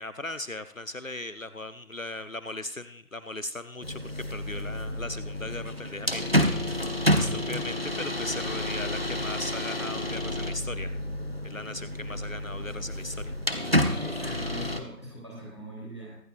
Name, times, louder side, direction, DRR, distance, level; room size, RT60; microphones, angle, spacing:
voice 1, 0.0-11.0 11.4-13.3, left 2 dB, 60° left, 12 dB, 0.8 m, -38 dB
sound 1, 3.8-14.8, left 1 dB, 40° right, 0.9 m, -29 dB
voice 2, 7.1-7.7 14.0-16.2, equal, 20° right, -5 dB, 3.3 m, -42 dB
23.5 x 7.9 x 2.5 m, 0.67 s
figure-of-eight pair, 175°, 45 cm